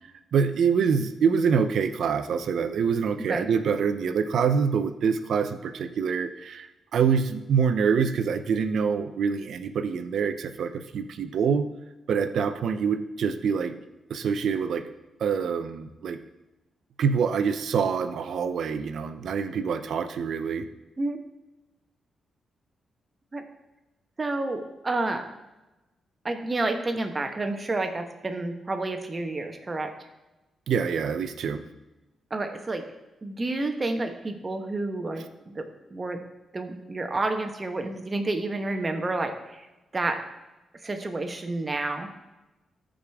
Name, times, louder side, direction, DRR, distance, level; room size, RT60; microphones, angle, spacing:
voice 1, 0.3-11.7 12.1-13.7 14.1-14.8 15.2-16.2 17.0-20.7 30.7-31.6, right 6 dB, 75° right, 10 dB, 0.6 m, -25 dB
voice 2, 24.2-25.2 26.2-29.9 32.3-32.9 33.2-36.2 36.5-39.7 39.9-40.2 40.8-42.1, right 2 dB, 30° right, 5 dB, 1.2 m, -30 dB
14.0 x 5.1 x 3.6 m, 1.1 s
cardioid pair, 75°, 0 cm